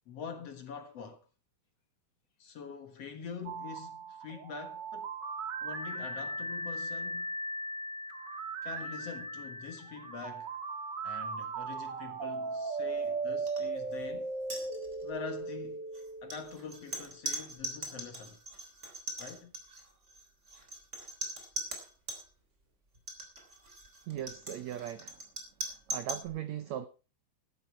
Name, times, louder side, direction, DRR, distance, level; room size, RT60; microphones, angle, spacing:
voice 1, 0.1-1.2 2.4-5.1 5.6-7.3 8.6-10.5 11.0-14.3 15.0-15.8 16.2-18.4 19.2-19.5, left 6 dB, 55° left, 2.1 m, -45 dB
sound 1, 3.5-17.3, right 3 dB, 60° right, 1.2 m, -38 dB
sound 2, 13.5-13.6 13.9-14.1 14.4-15.2 15.9-22.2 22.9-26.3, right 1 dB, 20° right, 3.2 m, -41 dB
voice 2, 24.1-25.2 25.7-26.9, right 11 dB, 85° right, 1.6 m, -39 dB
14.0 x 11.5 x 4.5 m
omnidirectional pair, 4.2 m